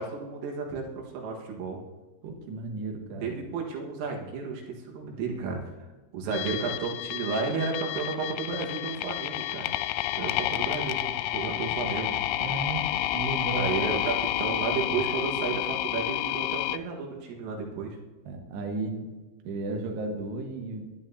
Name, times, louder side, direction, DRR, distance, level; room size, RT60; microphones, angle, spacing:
voice 1, 0.0-1.8 3.2-5.6 6.1-9.7 10.2-12.2 13.6-18.0, right 5 dB, 85° right, 0 dB, 4.2 m, -32 dB
voice 2, 2.2-3.4 12.4-14.0 18.2-19.1 19.4-20.9, right 3 dB, 65° right, 2 dB, 3.1 m, -34 dB
sound 1, 6.3-16.8, left 15 dB, 85° left, 2.8 m, -30 dB
19.0 x 11.0 x 2.8 m, 1.2 s
omnidirectional pair, 5.7 m